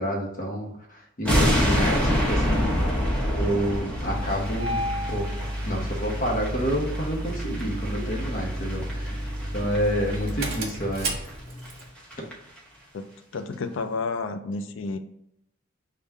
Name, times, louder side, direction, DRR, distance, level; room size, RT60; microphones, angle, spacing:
voice 1, 0.0-2.7 3.3-5.3 5.7-9.2 9.5-11.3 12.2-12.3, equal, 45° left, 0 dB, 0.9 m, -29 dB
sound 1, 1.2-10.4 10.7-10.9 11.3-11.4 11.6-11.7 12.0-12.3 12.6-12.7, equal, 5° left, 0.8 m, -27 dB
Engine starting, 4.0-11.9, equal, 50° right, 1.0 m, -31 dB
voice 2, 13.3-15.0, left 3 dB, 70° left, 7 dB, 0.4 m, -31 dB
3.6 x 2.4 x 4.2 m, 0.77 s
head